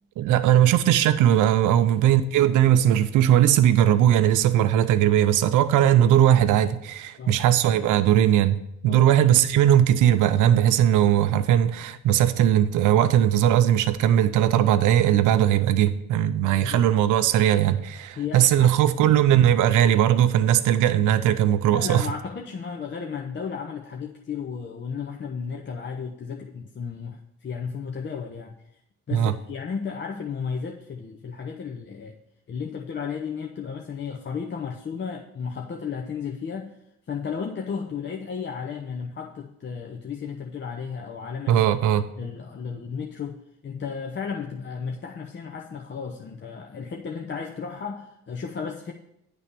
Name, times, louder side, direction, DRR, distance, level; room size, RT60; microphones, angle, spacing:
voice 1, 0.2-22.1 29.1-29.3 41.5-42.0, right 11 dB, 90° right, 10 dB, 0.6 m, -19 dB
voice 2, 5.8-6.2 7.2-7.4 8.8-9.2 16.5-16.9 18.2-18.7 19.0-19.2 21.7-28.6 29.1-32.2 32.5-36.7 37.1-41.6 42.2-48.9, left 6 dB, 40° left, 2 dB, 0.7 m, -34 dB
9.9 x 3.3 x 6.7 m, 0.78 s
cardioid pair, 90°, 30 cm